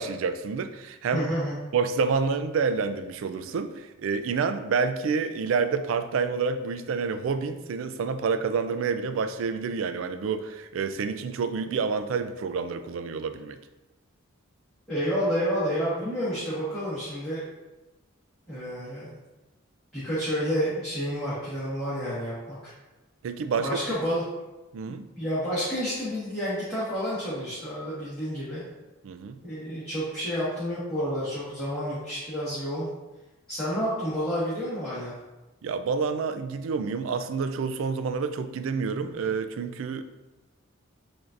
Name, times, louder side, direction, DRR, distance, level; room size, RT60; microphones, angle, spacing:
voice 1, 0.0-1.3 1.7-13.6 23.2-23.8 24.7-25.1 29.0-29.4 35.6-40.0, right 5 dB, 70° right, 10 dB, 0.3 m, -28 dB
voice 2, 1.1-1.5 14.9-17.4 18.5-19.2 19.9-22.7 23.6-24.2 24.8-28.6 29.4-32.9 33.5-35.1, equal, 5° left, -13 dB, 1.4 m, -30 dB
7.4 x 2.7 x 2.5 m, 1.1 s
head